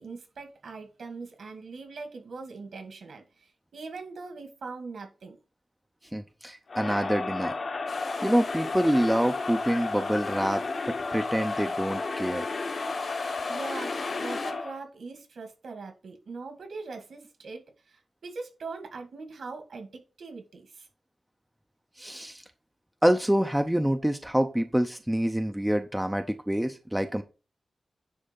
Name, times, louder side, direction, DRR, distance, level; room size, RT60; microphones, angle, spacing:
voice 1, 0.0-5.4 13.5-20.9, right 4 dB, 75° right, 5 dB, 2.2 m, -41 dB
voice 2, 6.1-7.5 8.2-12.4 22.0-22.4 23.0-27.2, equal, 5° right, 7 dB, 0.5 m, -26 dB
Crowd, 6.7-14.8, left 3 dB, 45° left, 1.0 m, -33 dB
sound 1, 7.9-14.5, left 4 dB, 60° left, 1.7 m, -41 dB
10.0 x 3.3 x 5.3 m, 0.32 s
wide cardioid pair, 175°, 0 cm